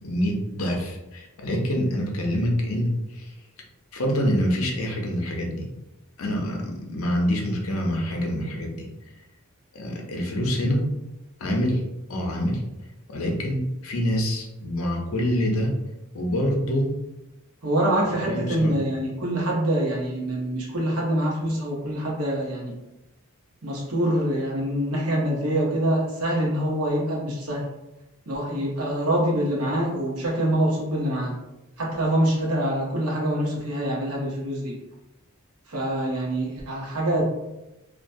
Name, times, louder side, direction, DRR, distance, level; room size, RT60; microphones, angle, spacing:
voice 1, 0.0-3.3 3.9-5.7 6.2-8.9 9.7-10.8 11.4-11.8 12.1-12.6 13.1-15.7 16.1-16.9 18.2-18.8, equal, 70° left, 1 dB, 0.6 m, -26 dB
voice 2, 17.6-22.7 23.6-27.7 28.3-31.3 31.8-34.8 35.7-37.2, right 1 dB, 85° right, -3 dB, 0.9 m, -25 dB
2.3 x 2.1 x 2.6 m, 0.97 s
head